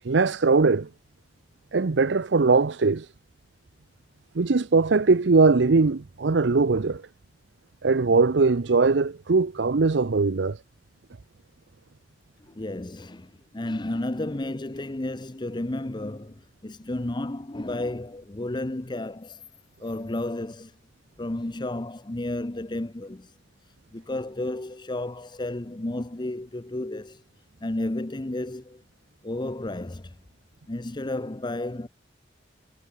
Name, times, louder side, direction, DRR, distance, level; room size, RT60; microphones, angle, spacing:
voice 1, 0.0-0.9 1.7-3.1 4.4-7.0 7.8-10.6, right 4 dB, 80° right, 0.7 m, -21 dB
voice 2, 12.4-19.4 19.8-20.7 21.2-23.3 23.9-27.2 27.6-28.8 29.2-30.2 30.7-31.9, left 1 dB, 25° left, 0.8 m, -32 dB
head